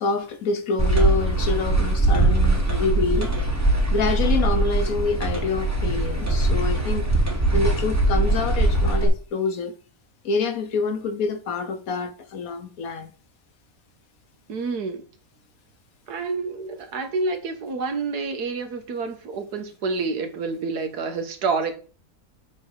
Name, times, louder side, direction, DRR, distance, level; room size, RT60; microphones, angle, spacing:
voice 1, 0.0-3.3 3.9-7.1 7.5-9.7 10.2-13.1, left 4 dB, 65° left, 1.3 m, -26 dB
sound 1, 0.8-9.1, right 2 dB, 10° right, 1.2 m, -21 dB
voice 2, 14.5-15.0 16.1-21.8, right 4 dB, 80° right, 1.7 m, -28 dB
7.8 x 3.3 x 6.4 m
omnidirectional pair, 1.7 m